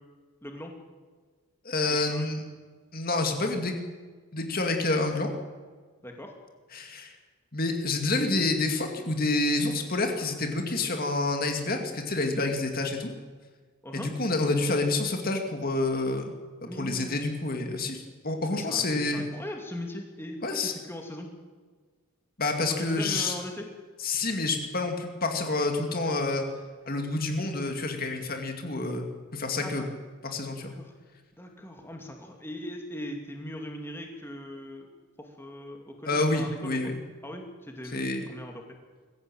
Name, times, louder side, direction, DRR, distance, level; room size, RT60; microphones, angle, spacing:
voice 1, 0.4-0.7 2.1-2.3 6.0-6.3 13.8-14.1 16.6-17.3 18.5-21.3 22.7-23.7 29.6-29.9 30.6-30.9 31.4-34.9 35.2-36.9 37.2-38.6, left 1 dB, 10° left, 2 dB, 2.6 m, -40 dB
voice 2, 1.6-2.4 2.9-3.8 4.3-5.3 6.7-7.1 7.5-13.1 13.9-16.3 16.6-19.2 20.4-20.7 22.4-23.3 24.0-26.4 26.9-29.9 30.2-30.7 36.1-37.0 37.9-38.3, left 2 dB, 40° left, 4 dB, 2.4 m, -28 dB
23.0 x 15.0 x 9.0 m, 1.4 s
head